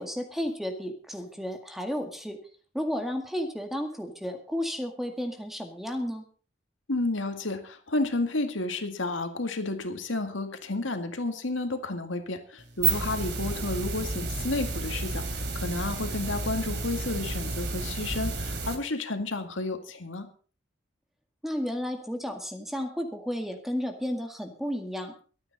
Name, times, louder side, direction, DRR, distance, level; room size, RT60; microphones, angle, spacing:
voice 1, 0.0-2.4 2.7-6.2 21.4-25.1, equal, ahead, 4 dB, 2.0 m, -32 dB
voice 2, 6.9-20.3, left 2 dB, 85° left, 6 dB, 2.0 m, -31 dB
sound 1, 12.6-18.7, right 4 dB, 60° right, 2.9 m, -31 dB
24.0 x 9.2 x 4.2 m, 0.41 s
head